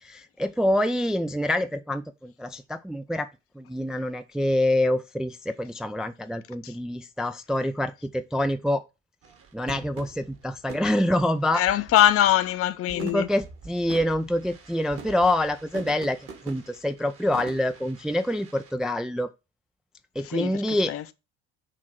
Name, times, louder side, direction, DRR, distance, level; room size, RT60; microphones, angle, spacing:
voice 1, 0.0-3.3 3.6-8.8 9.5-11.6 12.9-19.3 20.2-20.9, left 1 dB, ahead, 0.4 m, -26 dB
sound 1, 9.2-12.5 12.9-18.7, right 5 dB, 40° right, 1.5 m, -45 dB
voice 2, 11.5-13.3 20.2-20.6 20.9-21.1, left 12 dB, 40° left, 0.7 m, -22 dB
7.6 x 3.1 x 6.2 m
figure-of-eight pair, 60°, 34 cm